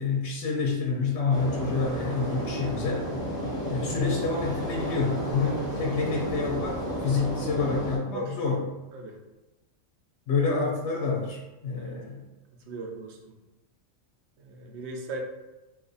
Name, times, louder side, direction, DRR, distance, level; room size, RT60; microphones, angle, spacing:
voice 1, 0.0-3.1 3.7-8.6 10.3-12.2, left 4 dB, 70° left, -1 dB, 0.8 m, -28 dB
sound 1, 1.3-8.0, equal, 5° left, 1.0 m, -32 dB
voice 2, 12.7-13.2 14.4-15.2, right 2 dB, 65° right, 2 dB, 0.8 m, -37 dB
2.5 x 2.4 x 3.9 m, 1.0 s
omnidirectional pair, 1.3 m